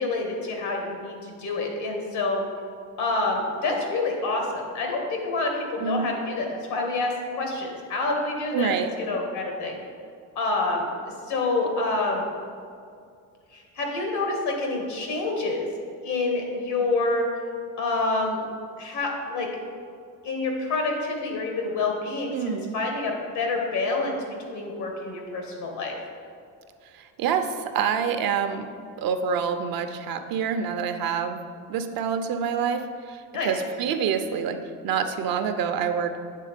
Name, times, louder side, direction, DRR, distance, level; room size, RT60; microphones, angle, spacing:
voice 1, 0.0-2.4 3.0-9.8 10.4-10.9 11.3-12.3 13.5-15.7 16.0-17.3 17.8-18.4 18.8-19.5 20.2-24.2 24.5-25.9 33.3-33.5, left 3 dB, 80° left, 1 dB, 1.7 m, -27 dB
voice 2, 8.5-8.9 22.3-22.7 27.2-28.6 29.0-31.4 31.7-34.6 34.8-36.2, right 7 dB, 60° right, 8 dB, 0.7 m, -27 dB
8.5 x 3.6 x 5.1 m, 2.3 s
supercardioid pair, 80°, 40 cm